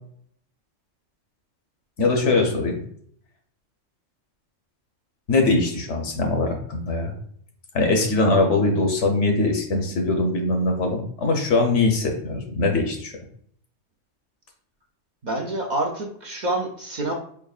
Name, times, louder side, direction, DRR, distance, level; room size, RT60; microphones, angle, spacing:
voice 1, 2.0-2.8 5.3-7.1 7.7-13.1, left 2 dB, 70° left, 2 dB, 1.1 m, -22 dB
voice 2, 15.2-17.1, right 2 dB, 50° right, 0 dB, 0.5 m, -27 dB
4.4 x 3.6 x 2.3 m, 0.63 s
omnidirectional pair, 1.3 m